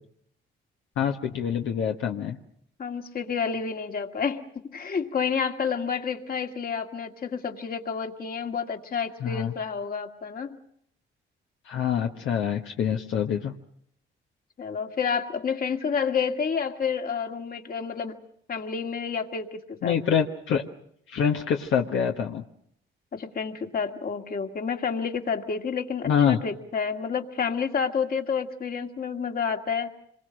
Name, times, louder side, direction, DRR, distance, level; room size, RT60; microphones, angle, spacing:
voice 1, 1.0-2.4 9.2-9.5 11.6-13.5 19.8-20.6 21.1-22.4 26.0-26.4, left 8 dB, 75° left, 2 dB, 1.4 m, -25 dB
voice 2, 2.8-4.5 4.7-10.6 14.6-18.1 18.5-20.0 23.1-29.9, left 6 dB, 50° left, 5 dB, 2.1 m, -29 dB
26.5 x 22.5 x 6.4 m, 0.69 s
cardioid pair, 90°, 20 cm